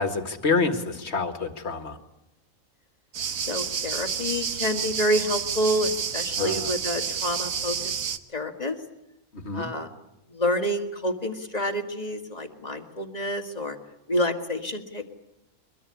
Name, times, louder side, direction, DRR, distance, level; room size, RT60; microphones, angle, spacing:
voice 1, 0.0-2.0 6.4-6.7 9.3-9.7, left 4 dB, 50° left, 8 dB, 2.1 m, -27 dB
sound 1, 3.1-8.2, right 7 dB, 70° right, 1.5 m, -30 dB
voice 2, 3.4-7.9 8.3-8.8 9.5-9.9 10.3-13.8 14.1-15.0, equal, 30° left, 5 dB, 2.0 m, -28 dB
23.5 x 22.0 x 9.8 m, 0.87 s
omnidirectional pair, 1.5 m